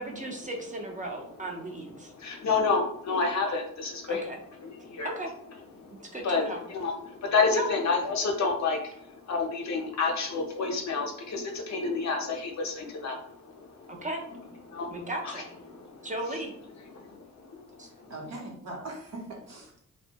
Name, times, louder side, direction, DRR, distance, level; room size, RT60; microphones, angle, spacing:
voice 1, 0.0-2.1 4.1-4.4 5.2-5.3 6.0-6.6 7.5-7.7 13.9-14.2 14.9-15.4 16.0-16.5 17.8-17.9, right 1 dB, 25° right, 1 dB, 0.4 m, -36 dB
voice 2, 2.2-4.2 4.6-5.1 5.8-6.4 6.7-14.0 14.7-15.0 15.7-16.1 16.9-18.1, left 4 dB, 60° left, 2 dB, 0.6 m, -30 dB
voice 3, 17.8-19.8, right 2 dB, 55° right, -1 dB, 0.8 m, -41 dB
2.6 x 2.1 x 2.8 m, 0.68 s
wide cardioid pair, 120°, 31 cm